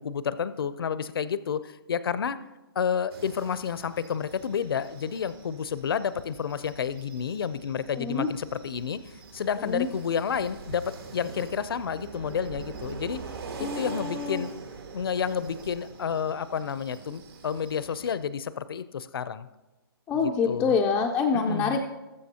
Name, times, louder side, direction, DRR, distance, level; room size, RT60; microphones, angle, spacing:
voice 1, 0.0-2.4 2.8-9.0 9.3-13.2 13.6-14.5 14.9-19.5 20.2-20.7 21.3-21.8, left 7 dB, 70° left, 15 dB, 0.6 m, -30 dB
sound 1, 3.1-18.2, right 4 dB, 75° right, 2.5 m, -44 dB
voice 2, 8.0-8.3 9.6-9.9 13.6-14.4 20.1-21.8, left 5 dB, 10° left, -1 dB, 0.3 m, -26 dB
20.0 x 7.4 x 2.9 m, 1.1 s
hypercardioid pair, 160°, 13 cm